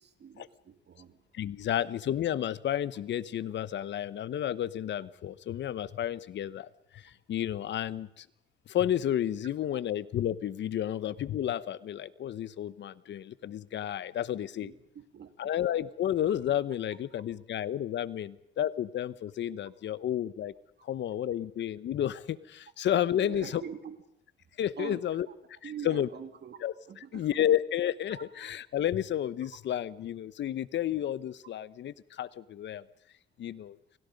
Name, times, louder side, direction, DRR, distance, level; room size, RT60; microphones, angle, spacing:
voice 1, 0.0-1.2 14.6-15.5 23.1-23.9 24.8-25.3 25.6-26.6 26.9-27.3 28.1-28.5 31.6-31.7, right 7 dB, 55° right, 8 dB, 2.9 m, -44 dB
voice 2, 1.3-8.3 8.7-14.7 15.4-20.5 20.8-23.6 24.6-26.1 26.6-26.7 27.1-32.8 33.4-33.8, left 11 dB, 65° left, 17 dB, 1.0 m, -31 dB
30.0 x 24.5 x 5.3 m, 0.76 s
cardioid pair, 90°, 20 cm